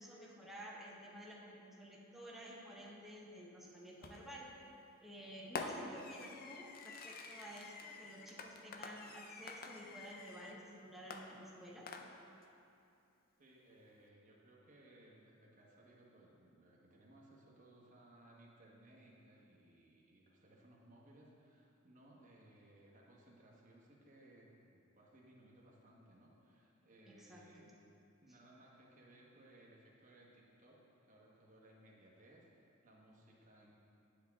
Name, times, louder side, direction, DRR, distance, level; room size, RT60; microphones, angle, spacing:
voice 1, 0.0-4.5 5.0-11.9 27.1-27.7, equal, ahead, -4 dB, 0.9 m, -52 dB
Fireworks, 4.0-4.4 5.6-10.6 11.1-12.4, left 4 dB, 45° left, 0.5 m, -48 dB
voice 2, 13.4-27.7 28.2-33.7, right 1 dB, 40° right, -3 dB, 1.1 m, -63 dB
10.5 x 5.0 x 3.5 m, 2.7 s
head